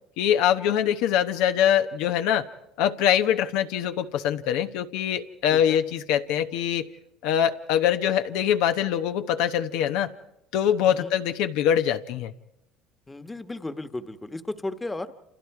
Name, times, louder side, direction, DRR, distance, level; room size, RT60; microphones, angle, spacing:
voice 1, 0.2-2.5 2.8-6.9 7.2-10.1 10.5-12.3, left 10 dB, 75° left, 8 dB, 0.9 m, -23 dB
voice 2, 13.1-15.2, left 2 dB, 15° left, 10 dB, 1.3 m, -35 dB
28.5 x 28.0 x 4.8 m, 0.85 s
supercardioid pair, 100°, 0 cm